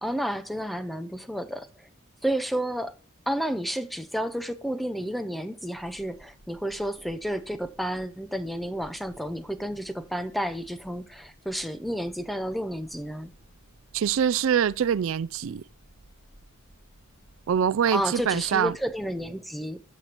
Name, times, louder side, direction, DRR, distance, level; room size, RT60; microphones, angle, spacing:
voice 1, 0.0-1.9 2.2-2.9 3.3-13.3 17.9-19.8, equal, ahead, 0.5 m, -31 dB
sound 1, 5.8-19.3, right 1 dB, 80° left, 4.3 m, -57 dB
voice 2, 13.9-15.6 17.5-18.8, right 8 dB, 65° right, 0.3 m, -24 dB
12.5 x 6.7 x 2.9 m
head